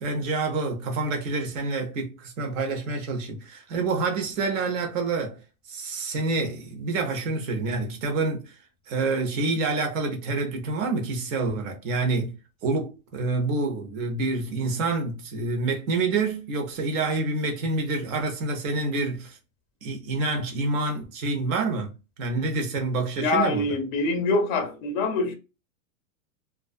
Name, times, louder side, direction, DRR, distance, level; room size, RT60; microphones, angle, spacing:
voice 1, 0.0-5.4 5.7-8.5 8.9-12.3 12.6-19.4 19.8-21.9 22.2-23.7, right 3 dB, 60° right, 0.9 m, -27 dB
voice 2, 23.2-25.3, left 2 dB, 35° left, 0.4 m, -24 dB
2.4 x 2.3 x 2.3 m
supercardioid pair, 150°, 45 cm